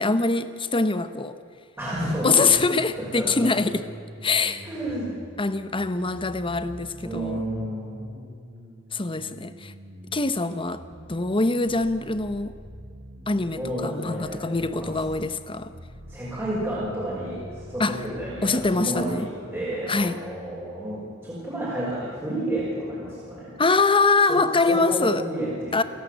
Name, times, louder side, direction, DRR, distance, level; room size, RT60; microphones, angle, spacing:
voice 1, 0.0-1.4 2.2-3.8 4.2-4.7 5.4-7.4 8.9-9.7 10.1-10.8 11.1-12.6 13.3-15.7 17.8-18.0 18.4-19.3 19.9-20.2 23.6-25.2 25.7-25.8, left 3 dB, 25° left, 12 dB, 1.0 m, -23 dB
voice 2, 1.8-2.6 3.0-3.5 4.6-5.1 7.0-8.0 13.6-14.9 16.1-23.6 24.3-24.4 24.7-25.8, right 1 dB, 10° right, -8 dB, 6.0 m, -31 dB
sound 1, 1.9-18.9, equal, 45° right, 5.6 m, -45 dB
29.5 x 11.5 x 8.2 m, 2.4 s
head